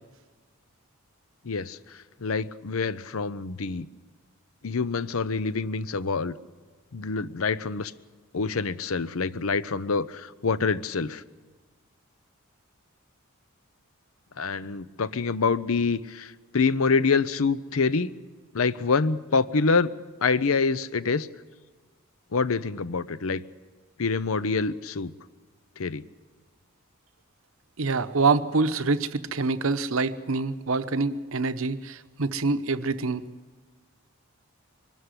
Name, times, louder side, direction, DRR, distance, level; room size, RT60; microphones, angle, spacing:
voice 1, 1.4-1.8 2.2-3.9 4.6-6.4 6.9-7.9 8.3-11.2 14.4-18.1 18.5-19.9 20.2-21.3 22.3-23.4 24.0-25.1 25.8-26.0, left 4 dB, 80° left, 16 dB, 0.7 m, -26 dB
voice 2, 27.8-33.2, right 3 dB, 70° right, 11 dB, 0.9 m, -26 dB
23.0 x 12.5 x 9.8 m, 1.4 s
head